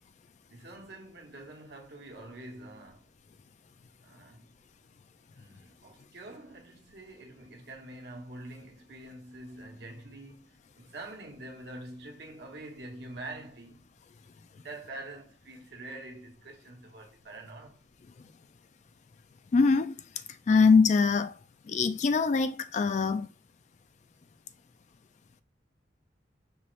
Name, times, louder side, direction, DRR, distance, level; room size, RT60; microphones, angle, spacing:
voice 1, 0.5-3.1 4.0-4.5 5.3-13.9 14.6-17.8, right 2 dB, 65° right, 1.0 m, -46 dB
voice 2, 19.5-20.0 20.5-21.3 21.7-23.3, left 4 dB, 40° left, 0.3 m, -23 dB
5.5 x 2.5 x 3.1 m
head